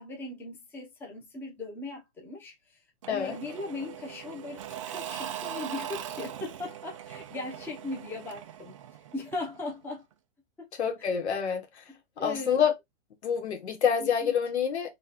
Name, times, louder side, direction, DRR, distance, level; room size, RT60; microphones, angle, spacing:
voice 1, 0.0-2.8 3.1-8.8 9.1-10.0 10.6-10.7 12.2-12.6 14.0-14.3, left 2 dB, 5° left, 0.7 m, -38 dB
Engine / Mechanisms / Drill, 3.0-9.7, right 10 dB, 30° right, 0.4 m, -41 dB
voice 2, 10.8-11.7 12.2-12.7 13.2-14.9, left 7 dB, 80° left, 1.4 m, -27 dB
3.8 x 2.4 x 4.1 m
hypercardioid pair, 160°, 33 cm